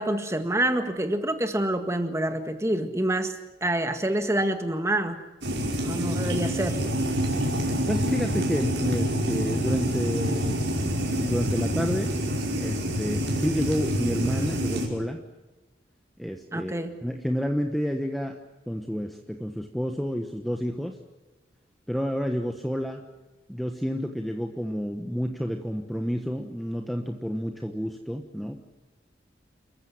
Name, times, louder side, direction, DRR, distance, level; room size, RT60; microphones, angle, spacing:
voice 1, 0.0-5.2 5.8-6.8 16.5-17.0, right 1 dB, 15° right, 7 dB, 1.8 m, -27 dB
sound 1, 5.4-14.9, equal, 80° right, 5.6 m, -27 dB
voice 2, 7.9-12.1 12.6-15.2 16.2-18.4 18.7-21.0 21.9-23.0 23.5-28.6, equal, ahead, 3 dB, 1.2 m, -30 dB
29.0 x 15.0 x 9.4 m, 1.1 s
head